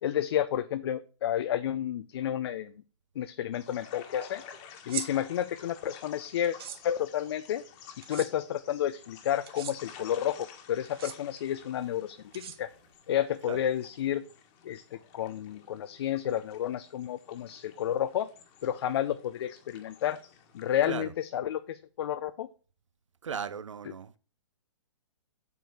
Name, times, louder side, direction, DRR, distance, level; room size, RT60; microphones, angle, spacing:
voice 1, 0.0-2.8 3.2-4.4 4.9-6.6 6.8-7.6 8.1-12.7 13.1-14.2 14.6-18.3 18.6-20.2 20.5-22.5, left 11 dB, 55° left, 0.6 m, -31 dB
sound 1, 3.5-21.1, left 8 dB, 35° left, 1.6 m, -52 dB
sound 2, 4.8-5.1 6.4-6.8 8.0-8.3 9.4-9.7 10.8-11.1 12.3-12.9, right 9 dB, 50° right, 1.3 m, -38 dB
voice 2, 23.2-24.2, right 6 dB, 90° right, 0.7 m, -37 dB
8.1 x 4.6 x 7.0 m
hypercardioid pair, 140°, 16 cm